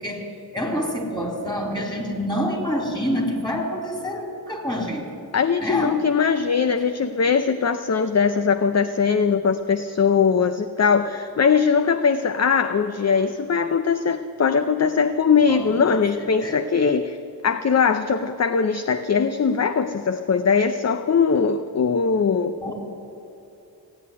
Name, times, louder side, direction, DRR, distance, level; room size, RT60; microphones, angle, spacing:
voice 1, 0.0-5.0 5.6-6.0 15.5-15.6 15.9-16.0 16.4-16.6 22.6-22.7, equal, 10° left, 1 dB, 3.6 m, -27 dB
voice 2, 5.3-17.2 17.4-22.6, left 6 dB, 40° left, 10 dB, 0.6 m, -21 dB
16.5 x 8.5 x 9.7 m, 2.9 s
cardioid pair, 55°, 40 cm